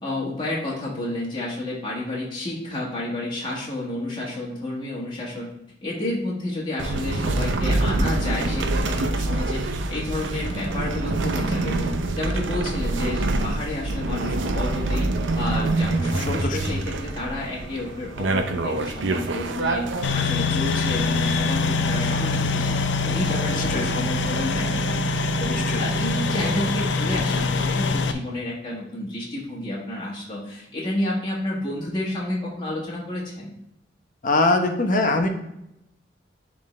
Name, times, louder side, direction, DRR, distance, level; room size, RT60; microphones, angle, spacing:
voice 1, 0.0-5.5 5.8-9.6 9.9-11.9 12.1-15.1 15.3-19.8 20.1-25.0 25.4-33.5, left 1 dB, 25° left, -6 dB, 1.5 m, -30 dB
sound 1, 6.8-20.1, right 2 dB, 75° right, 0.6 m, -25 dB
voice 2, 16.3-16.6 23.7-23.9 25.5-25.8 34.2-35.3, left 2 dB, 45° left, 4 dB, 0.9 m, -22 dB
sound 2, 20.0-28.1, left 3 dB, 70° left, 0.5 m, -24 dB
10.5 x 3.8 x 3.2 m, 0.81 s
head